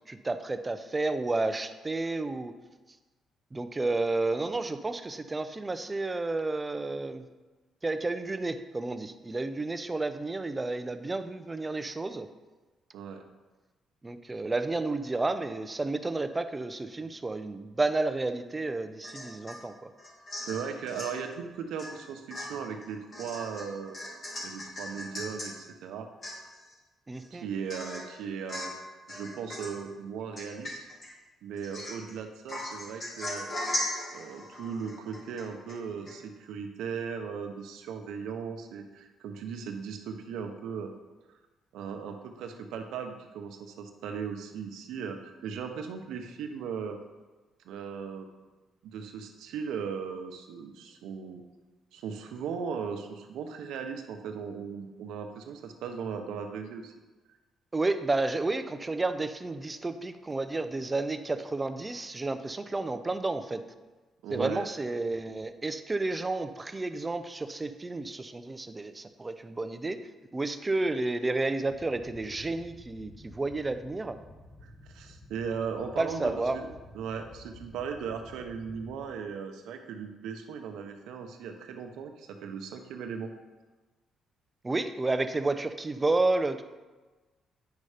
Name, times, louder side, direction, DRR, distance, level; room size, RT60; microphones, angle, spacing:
voice 1, 0.1-2.5 3.5-7.2 7.8-12.3 14.0-19.9 27.1-27.5 57.7-63.6 64.3-70.0 70.3-74.2 76.0-76.6 84.6-86.6, right 2 dB, 20° right, 10 dB, 0.6 m, -31 dB
Domestic sounds home sounds / Chink clink / Drip, 19.0-19.6 20.0-21.2 21.8-22.0 22.3-25.5 25.9-26.0 26.2-26.7 27.2-27.3 27.7-28.1 28.5-28.8 29.1-29.8 30.4-31.1 31.6-32.1 32.5-35.8 36.1-36.2, left 1 dB, 45° left, 3.0 m, -38 dB
voice 2, 20.4-24.0 24.4-26.1 27.3-28.7 29.1-30.8 31.4-33.5 34.1-40.9 41.7-47.0 47.6-48.3 48.8-51.4 51.9-56.9 64.2-64.6 74.6-76.7 76.9-83.3, right 6 dB, 85° right, 5 dB, 0.9 m, -37 dB
sound 1, 71.7-79.0, left 1 dB, 20° left, 1.5 m, -52 dB
9.3 x 5.5 x 5.0 m, 1.2 s
cardioid pair, 90°, 0 cm